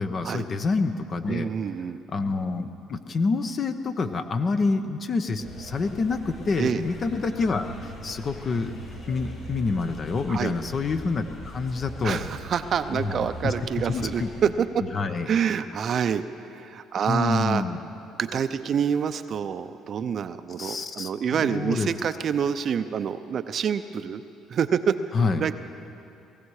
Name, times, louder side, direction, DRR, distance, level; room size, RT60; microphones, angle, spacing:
voice 1, 0.0-1.5 2.1-8.7 9.1-12.2 12.9-13.5 13.9-14.3 14.9-15.3 17.1-17.8 20.6-21.9 25.1-25.4, left 4 dB, 45° left, 8 dB, 0.9 m, -27 dB
voice 2, 1.3-2.0 6.6-6.8 10.3-10.5 12.0-14.7 15.3-17.6 18.2-24.2 24.5-25.0 25.4-25.6, right 7 dB, 50° right, 10 dB, 0.6 m, -27 dB
sound 1, 5.4-14.5, equal, 60° left, 4.5 m, -41 dB
19.5 x 15.0 x 4.8 m, 2.9 s
supercardioid pair, 80°, 0 cm